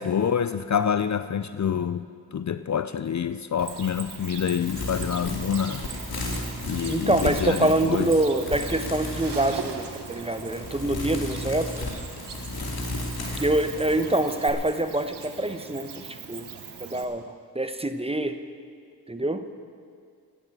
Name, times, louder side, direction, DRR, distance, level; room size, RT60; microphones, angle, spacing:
voice 1, 0.0-2.0 2.3-5.8 6.7-8.1, left 8 dB, 45° left, 12 dB, 0.5 m, -27 dB
Cricket, 3.6-17.0, right 6 dB, 75° right, 1.4 m, -40 dB
sound 1, 4.6-14.5, left 1 dB, 60° left, 2.6 m, -34 dB
voice 2, 6.9-11.9 13.4-16.5 16.8-17.2 17.5-18.4 19.1-19.4, right 1 dB, 15° right, 9 dB, 1.0 m, -25 dB
16.0 x 11.0 x 6.2 m, 2.2 s
cardioid pair, 45°, 41 cm